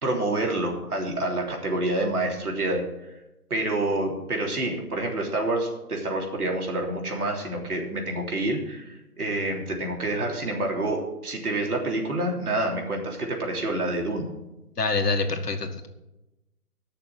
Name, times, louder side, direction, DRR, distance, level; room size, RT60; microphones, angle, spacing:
voice 1, 0.0-2.8 3.5-14.3, right 2 dB, 75° right, 0 dB, 3.5 m, -27 dB
voice 2, 14.8-15.9, left 3 dB, 90° left, 6 dB, 1.9 m, -26 dB
12.5 x 6.7 x 7.6 m, 0.98 s
hypercardioid pair, 170°, 46 cm